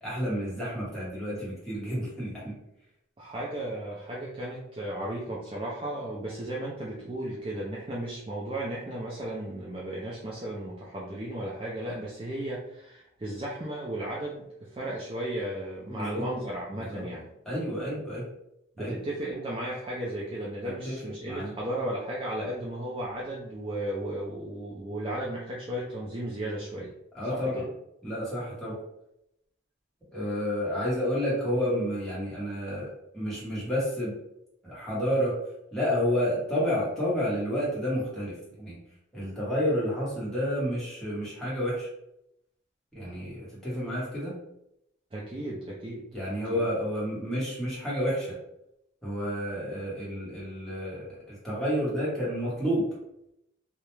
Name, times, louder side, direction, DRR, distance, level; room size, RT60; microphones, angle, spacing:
voice 1, 0.0-2.5 15.9-16.3 16.7-17.0 17.4-18.2 18.8-18.9 20.6-21.5 27.1-27.6 28.0-28.8 30.1-32.9 33.1-34.1 34.6-35.4 35.7-38.8 39.1-41.9 42.9-44.4 46.1-48.4 49.0-52.8, equal, ahead, -9 dB, 1.0 m, -30 dB
voice 2, 3.2-17.3 18.8-26.9 27.3-27.7 45.1-46.0 46.5-46.6, right 1 dB, 25° right, -5 dB, 0.4 m, -35 dB
2.3 x 2.1 x 3.0 m, 0.80 s
head